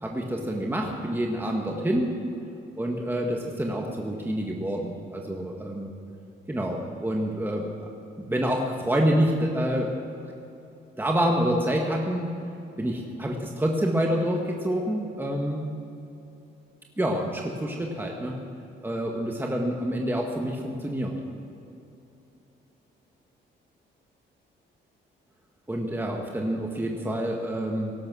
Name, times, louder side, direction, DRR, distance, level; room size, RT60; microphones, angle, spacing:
voice 1, 0.0-2.1 2.8-5.9 6.5-7.9 8.2-9.9 11.0-12.3 12.8-15.7 17.0-18.3 18.8-21.1 25.7-27.9, equal, 10° right, 0 dB, 1.7 m, -27 dB
18.5 x 11.5 x 6.3 m, 2.8 s
cardioid pair, 90°, 20 cm